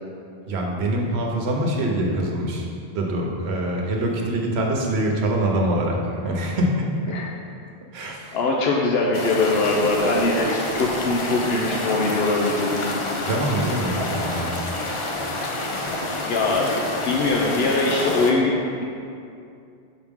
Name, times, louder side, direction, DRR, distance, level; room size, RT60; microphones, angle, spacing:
voice 1, 0.5-2.7 2.9-7.2 7.9-8.4 13.2-14.6, right 1 dB, 85° right, 0 dB, 1.1 m, -24 dB
voice 2, 8.3-12.9 16.2-16.7 17.0-18.8, left 2 dB, 75° left, -1 dB, 0.8 m, -22 dB
sound 1, 9.1-18.3, left 2 dB, 40° left, 0.5 m, -28 dB
5.9 x 4.6 x 3.6 m, 2.5 s
omnidirectional pair, 1.0 m